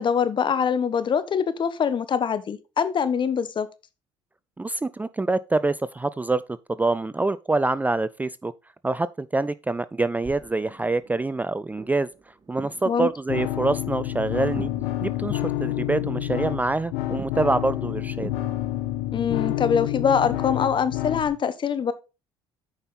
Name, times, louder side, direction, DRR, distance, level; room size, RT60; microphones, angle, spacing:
voice 1, 0.0-3.7 12.8-13.1 19.1-21.9, left 7 dB, 45° left, 1.1 m, -24 dB
voice 2, 4.6-8.5 8.8-12.1 12.5-14.7 15.0-18.3, right 2 dB, 15° right, 0.4 m, -25 dB
sound 1, 10.2-18.6, right 4 dB, 35° right, 1.8 m, -46 dB
sound 2, 13.3-21.3, left 14 dB, 80° left, 1.1 m, -28 dB
8.8 x 5.4 x 4.1 m
supercardioid pair, 70°, 12 cm